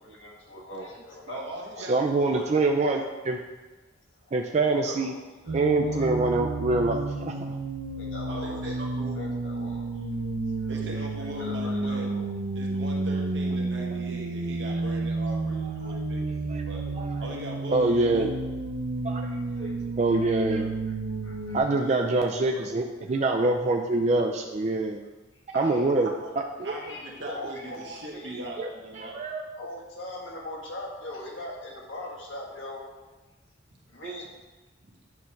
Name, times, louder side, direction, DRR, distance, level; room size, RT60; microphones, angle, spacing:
voice 1, 0.0-1.4 1.8-1.9 4.2-6.1 8.0-8.8 9.1-10.1 10.6-10.7 11.4-12.3 16.6-17.2 19.0-19.7 20.1-21.0 21.2-21.7 23.1-23.5 25.5-25.9 26.6-28.5 29.6-32.8 33.9-34.3, left 1 dB, 80° left, -3 dB, 1.8 m, -42 dB
voice 2, 1.3-2.5 8.3-9.2 10.7-12.1 12.5-16.4 16.6-16.9 17.2-18.3 21.8-22.7 25.5-26.3 26.6-29.2 34.8-35.0, right 1 dB, 65° right, -2 dB, 1.4 m, -39 dB
voice 3, 1.9-3.4 4.3-5.1 5.5-7.6 16.5-16.6 17.0-17.2 17.7-18.3 19.0-19.3 19.6-20.7 21.5-25.0 25.5-26.1 26.4-26.7 28.6-28.7 29.0-29.5 34.0-34.1, right 2 dB, 35° right, 2 dB, 0.4 m, -25 dB
sound 1, 5.5-21.6, right 2 dB, 85° right, 0.7 m, -31 dB
9.1 x 3.2 x 5.7 m, 1.2 s
head